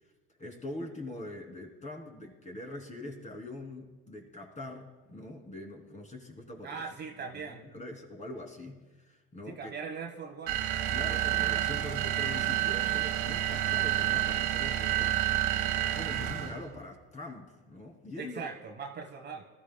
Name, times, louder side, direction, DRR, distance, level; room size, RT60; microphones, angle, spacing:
voice 1, 0.4-6.8 7.2-9.7 10.9-15.3 15.8-18.5, left 1 dB, 25° left, 2 dB, 2.8 m, -43 dB
voice 2, 6.6-7.7 9.5-10.9 18.2-19.4, right 5 dB, 35° right, 4 dB, 1.2 m, -41 dB
sound 1, 10.5-16.6, right 13 dB, 75° right, 1.4 m, -29 dB
21.0 x 13.5 x 2.2 m, 1.3 s
hypercardioid pair, 85°, 30 cm